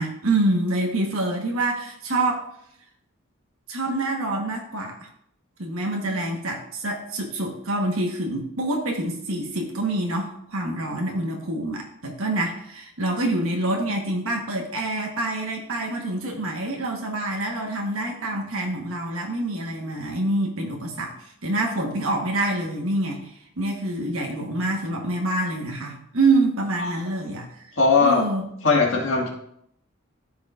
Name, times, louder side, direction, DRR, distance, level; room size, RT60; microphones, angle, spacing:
voice 1, 0.0-2.4 3.7-5.1 5.6-21.1 21.4-27.7 28.0-28.4, right 2 dB, 85° right, 1 dB, 1.3 m, -26 dB
voice 2, 27.8-28.3 28.6-29.3, left 4 dB, 65° left, -2 dB, 2.0 m, -19 dB
13.5 x 4.7 x 2.5 m, 0.71 s
head